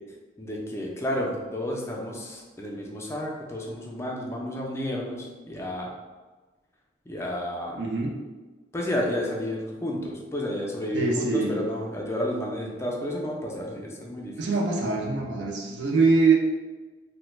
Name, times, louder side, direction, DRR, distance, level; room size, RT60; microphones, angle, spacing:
voice 1, 0.4-5.9 7.1-7.8 8.7-14.5, left 1 dB, 15° left, -2 dB, 0.4 m, -31 dB
voice 2, 7.8-8.2 10.9-11.6 14.4-16.3, right 4 dB, 70° right, -1 dB, 0.5 m, -23 dB
3.2 x 2.1 x 3.1 m, 1.3 s
head